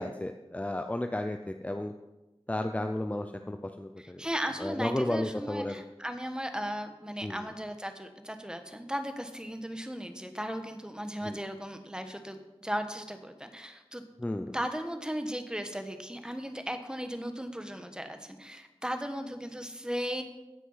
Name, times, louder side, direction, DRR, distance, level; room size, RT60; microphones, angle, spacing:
voice 1, 0.0-1.9 2.5-4.2 4.6-5.8 7.2-7.5 11.2-11.4 14.2-14.6, left 1 dB, 15° left, 6 dB, 0.6 m, -33 dB
voice 2, 4.0-14.0 14.5-20.2, equal, 10° right, 7 dB, 1.3 m, -36 dB
16.5 x 6.0 x 5.7 m, 1.1 s
wide cardioid pair, 65°, 10 cm